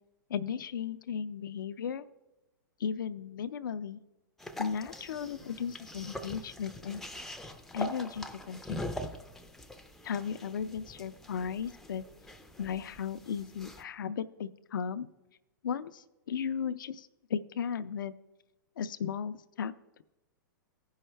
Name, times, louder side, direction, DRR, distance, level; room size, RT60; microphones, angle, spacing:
voice 1, 0.3-2.1 2.8-4.0 4.6-7.0 7.7-8.8 10.0-12.0 12.6-15.1 15.6-18.1 18.8-19.7, left 7 dB, 75° left, 13 dB, 0.5 m, -35 dB
sound 1, 4.4-13.8, left 1 dB, 5° left, 0.5 m, -43 dB
15.0 x 5.6 x 3.3 m, 1.0 s
hypercardioid pair, 120°, 11 cm